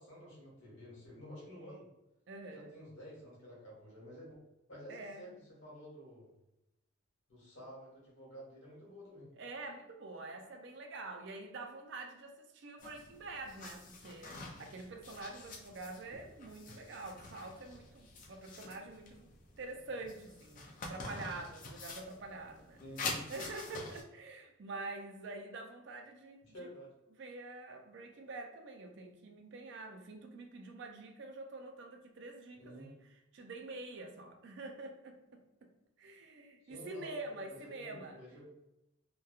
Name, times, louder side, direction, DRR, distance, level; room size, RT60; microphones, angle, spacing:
voice 1, 0.0-1.9 2.5-4.3 4.7-5.3 5.6-6.3 7.3-9.3 22.8-23.2 26.5-26.9 32.5-32.9 36.6-38.5, equal, 65° left, -5 dB, 1.3 m, -51 dB
voice 2, 2.3-2.7 4.9-5.3 9.3-22.8 23.3-26.7 27.2-33.0 33.3-35.4 36.0-38.2, right 2 dB, 60° right, 4 dB, 0.4 m, -46 dB
sound 1, 12.8-24.0, left 3 dB, 40° left, 0.4 m, -47 dB
2.8 x 2.2 x 2.3 m, 0.89 s
head